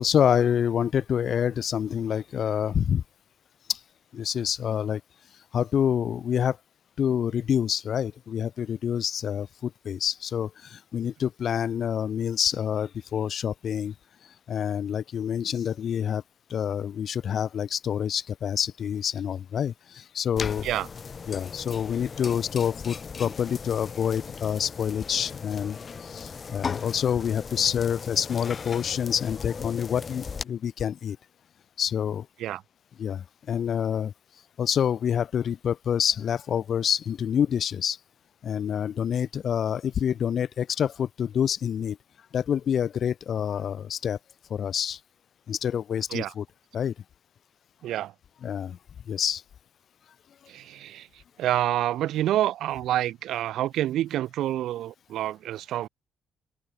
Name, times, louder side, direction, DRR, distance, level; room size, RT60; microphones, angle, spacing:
voice 1, 0.0-3.0 3.7-3.8 4.1-5.0 5.5-6.6 7.0-13.9 14.5-16.2 16.5-20.7 21.3-31.2 31.8-32.3 33.0-34.1 34.6-38.0 38.4-42.0 42.3-44.2 44.5-45.0 45.5-46.4 46.7-46.9 48.4-48.8 49.1-49.4, left 8 dB, 60° left, 1.1 m, -27 dB
sound 1, 20.4-30.4, left 5 dB, 40° left, 0.4 m, -37 dB
voice 2, 47.8-48.1 50.5-51.1 51.4-55.9, right 13 dB, 80° right, 0.4 m, -28 dB
open air
cardioid pair, 90°, 0 cm